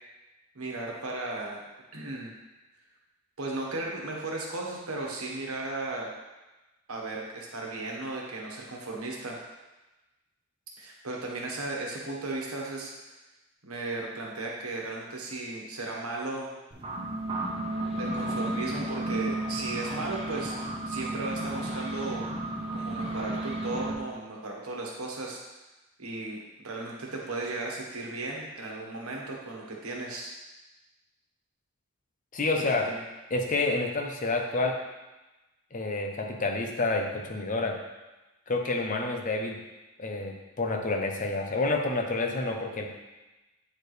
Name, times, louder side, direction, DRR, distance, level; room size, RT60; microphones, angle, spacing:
voice 1, 0.5-1.6 1.9-2.3 3.4-6.1 6.9-9.4 10.8-12.9 13.6-16.5 18.0-20.5 20.9-22.3 22.7-25.4 26.0-26.4 26.6-30.3 32.7-33.0, right 2 dB, 90° right, -2 dB, 1.3 m, -35 dB
sound 1, 16.7-23.9, right 1 dB, 25° right, 0.9 m, -33 dB
voice 2, 32.3-32.9 33.3-34.7 35.7-37.8 38.5-39.6 40.0-42.9, left 3 dB, 35° left, 2 dB, 0.7 m, -28 dB
8.4 x 4.5 x 3.3 m, 1.1 s
head